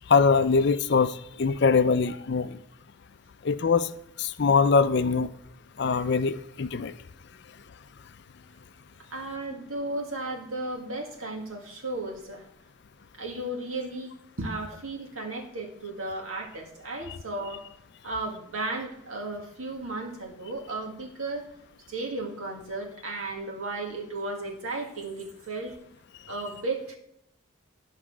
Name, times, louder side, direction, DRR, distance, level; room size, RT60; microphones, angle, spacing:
voice 1, 0.1-2.6 3.4-3.9 4.2-5.3 5.8-6.9, left 5 dB, 55° left, 0.4 m, -22 dB
voice 2, 9.1-12.4 13.1-14.1 14.4-17.6 18.0-21.5 21.9-25.8 26.3-27.0, right 2 dB, 80° right, 2.0 m, -34 dB
11.5 x 5.6 x 6.0 m
head